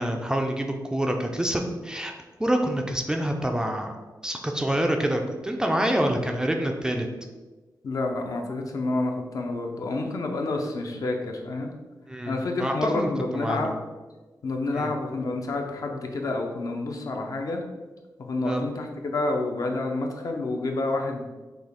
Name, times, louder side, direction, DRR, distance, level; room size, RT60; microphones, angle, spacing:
voice 1, 0.0-2.1 2.4-3.9 4.2-7.1 12.1-13.8 14.7-14.9 18.4-18.6, right 1 dB, 10° right, 2 dB, 0.3 m, -27 dB
voice 2, 7.8-11.7 12.3-13.7 14.4-17.6 18.2-21.2, left 2 dB, 55° left, 2 dB, 0.6 m, -29 dB
6.0 x 2.4 x 3.4 m, 1.2 s
wide cardioid pair, 165°, 7 cm